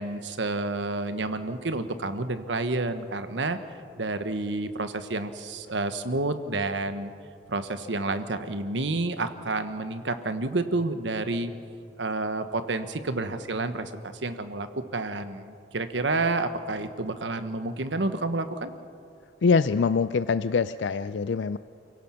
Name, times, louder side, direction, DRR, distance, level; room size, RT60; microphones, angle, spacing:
voice 1, 0.0-7.1 7.5-11.5 12.0-18.7, right 2 dB, 80° right, 9 dB, 1.2 m, -30 dB
voice 2, 19.4-21.6, left 5 dB, 75° left, 13 dB, 0.4 m, -24 dB
29.0 x 17.0 x 5.8 m, 2.4 s
head